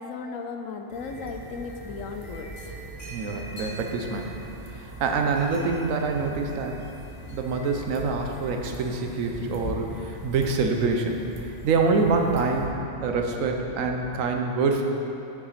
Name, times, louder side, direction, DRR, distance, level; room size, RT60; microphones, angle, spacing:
voice 1, 0.0-2.7, left 4 dB, 85° left, 5 dB, 1.0 m, -36 dB
sound 1, 0.9-12.7, equal, 50° left, 1.9 m, -43 dB
sound 2, 0.9-14.2, right 1 dB, 30° right, 0.5 m, -42 dB
voice 2, 3.1-4.4 4.7-6.8 7.3-11.2 11.6-12.7 13.0-14.8, right 4 dB, 90° right, 3 dB, 1.1 m, -26 dB
8.6 x 5.1 x 4.1 m, 2.8 s
omnidirectional pair, 1.3 m